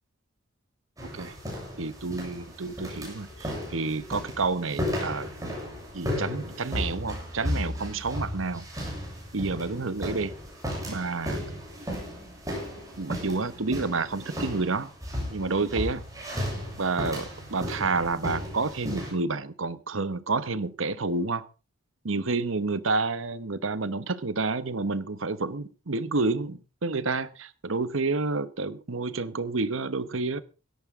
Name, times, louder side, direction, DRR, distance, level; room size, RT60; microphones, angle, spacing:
sound 1, 1.0-19.1, left 1 dB, 20° right, 7.4 m, -35 dB
voice 1, 1.8-5.3 5.9-8.7 9.3-10.3 10.9-11.4 13.0-14.9 15.3-16.0 16.8-21.5 22.0-30.4, right 3 dB, 80° right, 14 dB, 1.1 m, -29 dB
17.0 x 13.0 x 3.7 m, 0.33 s
head